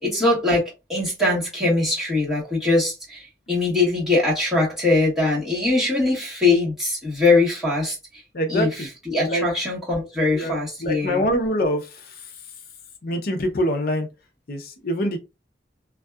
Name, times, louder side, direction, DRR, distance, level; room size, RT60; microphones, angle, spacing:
voice 1, 0.0-8.2 8.5-11.2, left 2 dB, ahead, 1.3 m, -22 dB
voice 2, 8.3-8.9 9.3-9.4 10.3-12.1 13.0-14.1 14.5-15.2, equal, 55° left, 0.6 m, -25 dB
2.6 x 2.3 x 2.3 m
head